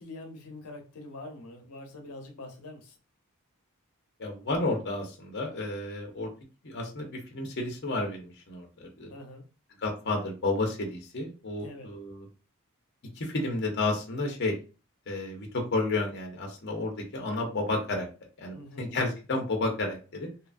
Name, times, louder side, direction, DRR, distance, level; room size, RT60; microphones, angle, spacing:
voice 1, 0.0-2.9 9.1-9.4 11.6-11.9 18.5-18.9, left 2 dB, 90° left, 3 dB, 0.7 m, -44 dB
voice 2, 4.2-6.3 6.6-9.1 9.8-12.3 13.2-14.5 15.1-18.0 18.4-20.3, left 2 dB, 50° left, 2 dB, 0.6 m, -31 dB
2.8 x 2.4 x 2.4 m, 0.33 s
head